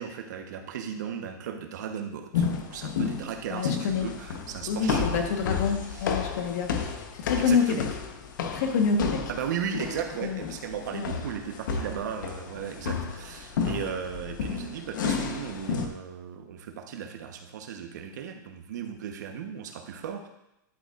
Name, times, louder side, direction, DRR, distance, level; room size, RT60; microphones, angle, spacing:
voice 1, 0.0-6.3 7.4-7.9 9.3-20.3, right 7 dB, 60° right, 5 dB, 1.1 m, -36 dB
sound 1, 2.3-15.9, left 6 dB, 75° left, 1.1 m, -32 dB
voice 2, 3.5-4.1 4.7-6.7 7.1-7.8 8.5-9.2 10.2-10.5 10.9-11.1, left 5 dB, 55° left, 4 dB, 1.4 m, -27 dB
11.0 x 8.5 x 2.5 m, 0.84 s
supercardioid pair, 175°, 11 cm